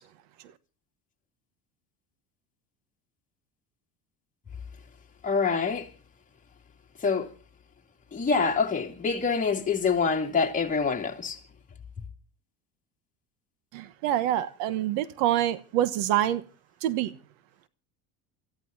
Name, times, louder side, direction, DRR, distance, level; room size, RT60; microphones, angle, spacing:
voice 1, 5.2-5.9 7.0-7.3 8.1-11.4, left 5 dB, 20° left, 2.6 m, -26 dB
voice 2, 13.7-16.4 16.8-17.1, right 12 dB, 85° right, 1.3 m, -26 dB
28.0 x 14.5 x 2.7 m
cardioid pair, 130°, 36 cm